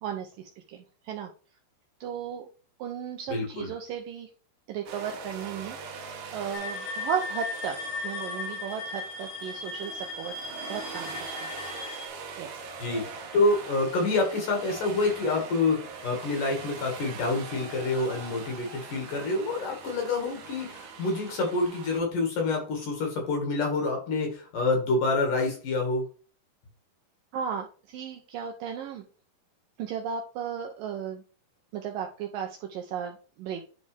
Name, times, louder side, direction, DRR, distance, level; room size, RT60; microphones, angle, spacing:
voice 1, 0.0-1.3 2.0-2.5 2.8-4.3 4.7-5.8 6.3-7.8 8.0-11.5 12.4-12.7 27.3-29.0 29.8-31.2 31.7-33.7, right 8 dB, 80° right, 3 dB, 2.1 m, -35 dB
voice 2, 3.3-3.7 12.8-26.0, left 3 dB, 60° left, 1 dB, 3.2 m, -27 dB
sound 1, 4.9-22.0, right 5 dB, 60° right, 2.4 m, -42 dB
sound 2, 6.5-12.1, left 3 dB, 75° left, 3.0 m, -37 dB
11.0 x 4.3 x 3.4 m, 0.38 s
omnidirectional pair, 4.7 m